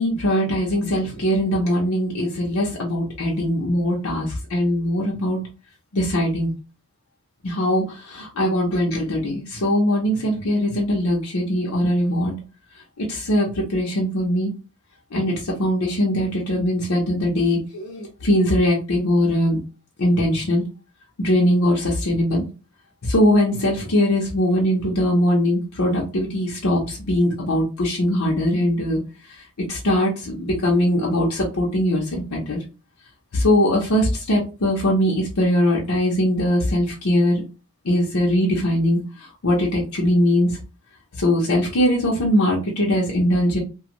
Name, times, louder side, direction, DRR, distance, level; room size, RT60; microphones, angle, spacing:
voice 1, 0.0-5.4 5.9-6.5 7.4-12.3 13.0-14.5 15.1-19.6 20.0-20.6 21.2-22.4 23.1-29.0 29.7-32.6 33.3-37.4 37.8-39.0 39.4-40.5 41.2-43.6, left 1 dB, 70° left, -3 dB, 0.7 m, -21 dB
2.5 x 2.3 x 2.9 m, 0.32 s
head